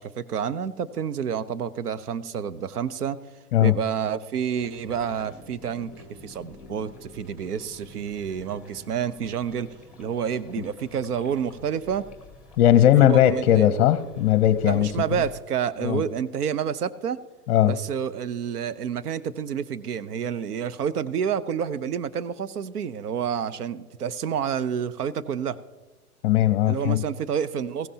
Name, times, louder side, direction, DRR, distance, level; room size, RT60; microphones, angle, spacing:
voice 1, 0.0-3.2 3.6-5.9 6.2-9.7 10.0-12.0 12.8-13.7 14.6-17.2 17.6-25.6 26.7-27.9, right 8 dB, 80° right, 14 dB, 0.9 m, -29 dB
sound 1, 4.6-15.4, left 3 dB, 5° right, 1.9 m, -48 dB
voice 2, 12.6-14.9 15.8-16.0 17.5-17.8 26.2-27.0, left 12 dB, 40° left, 14 dB, 0.7 m, -18 dB
15.5 x 15.5 x 2.9 m, 1.2 s
hypercardioid pair, 125°, 45 cm